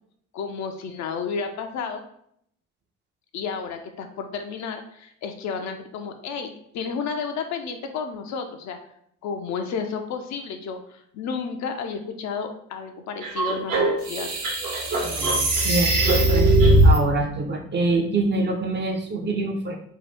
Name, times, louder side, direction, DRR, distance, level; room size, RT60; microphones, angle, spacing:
voice 1, 0.3-2.0 3.3-8.8 9.2-14.3, left 5 dB, 50° left, 5 dB, 0.5 m, -32 dB
sound 1, 13.2-17.0, right 1 dB, 60° right, 1.0 m, -19 dB
voice 2, 15.0-16.5 16.8-19.8, right 2 dB, 30° right, 3 dB, 0.6 m, -25 dB
2.8 x 2.3 x 3.4 m, 0.69 s
hypercardioid pair, 50°, 38 cm